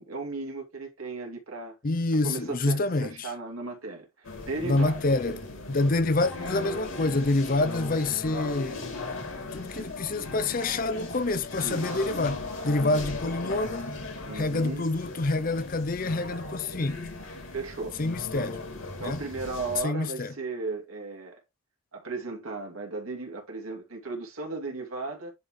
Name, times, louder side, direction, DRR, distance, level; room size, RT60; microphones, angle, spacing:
voice 1, 0.0-1.8 2.2-5.0 9.7-9.9 11.6-12.1 14.2-14.9 17.5-18.0 19.0-21.4 21.9-25.3, right 3 dB, 80° right, 2.6 m, -36 dB
voice 2, 1.8-3.3 4.6-8.8 9.5-14.0 14.3-17.1 18.0-18.6 19.0-19.2 19.8-20.3, left 2 dB, 40° left, 0.6 m, -27 dB
sound 1, 4.2-19.8, left 2 dB, 75° left, 2.8 m, -37 dB
10.5 x 3.7 x 3.1 m
head